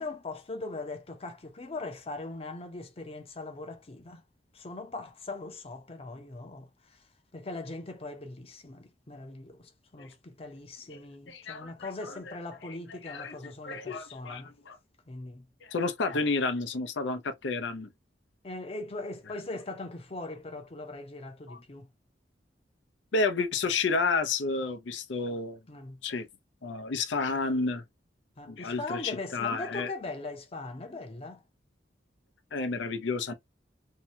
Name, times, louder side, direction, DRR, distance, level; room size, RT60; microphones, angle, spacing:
voice 1, 0.0-4.2 4.5-7.0 7.3-14.5 15.1-15.5 16.1-16.2 18.4-21.9 25.7-26.0 28.4-31.4, left 2 dB, 35° left, 0.6 m, -40 dB
voice 2, 11.3-12.3 13.0-13.4 13.6-14.8 15.6-17.9 21.5-21.6 23.1-25.6 26.0-26.3 26.6-27.8 28.5-29.9 32.5-33.3, left 3 dB, 85° left, 0.6 m, -31 dB
2.7 x 2.2 x 2.7 m
head